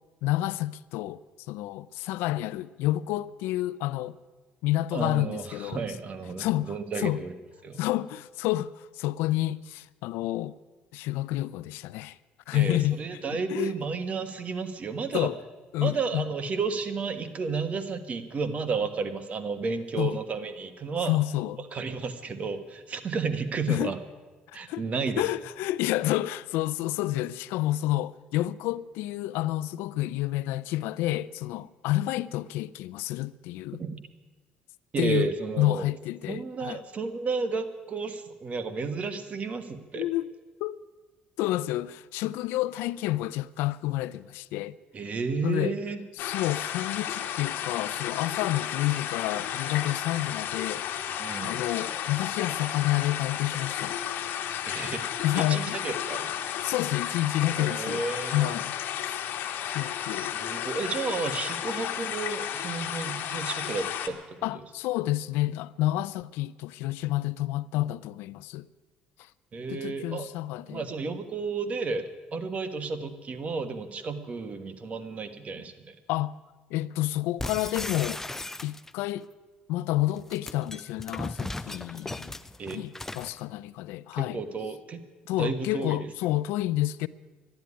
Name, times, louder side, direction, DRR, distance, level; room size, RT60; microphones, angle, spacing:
voice 1, 0.2-1.2 1.5-4.2 4.6-5.8 6.4-7.2 7.8-10.5 10.9-12.2 12.5-13.7 15.1-15.3 15.7-16.3 20.0-20.2 21.1-21.6 23.7-23.9 24.7-24.8 25.2-33.8 35.0-35.3 35.6-36.8 40.0-40.3 40.6-40.8 41.4-44.8 45.4-45.8 46.2-51.0 51.4-54.0 55.2-55.8 56.6-58.0 58.3-59.2 59.7-60.3 64.4-68.7 69.2-69.3 69.7-70.9 76.1-76.4 76.7-78.2 78.6-79.3 79.7-82.3 82.7-84.4 85.3-87.1, left 15 dB, 85° left, 0.4 m, -29 dB
voice 2, 4.9-7.3 7.6-7.8 12.5-15.3 15.8-21.2 21.7-24.0 24.5-25.2 33.7-34.0 34.9-35.9 36.3-40.1 44.9-46.0 51.2-51.6 54.7-55.0 55.3-56.3 57.6-58.5 60.1-64.5 69.5-70.3 70.7-75.9 82.6-82.8 84.2-85.0 85.4-86.1, right 4 dB, 40° right, 1.4 m, -32 dB
sound 1, 46.2-64.1, left 10 dB, 65° left, 1.3 m, -33 dB
sound 2, 77.4-79.1 80.1-83.4, left 2 dB, 10° left, 0.5 m, -37 dB
12.5 x 10.5 x 9.7 m
cardioid pair, 105°, 4 cm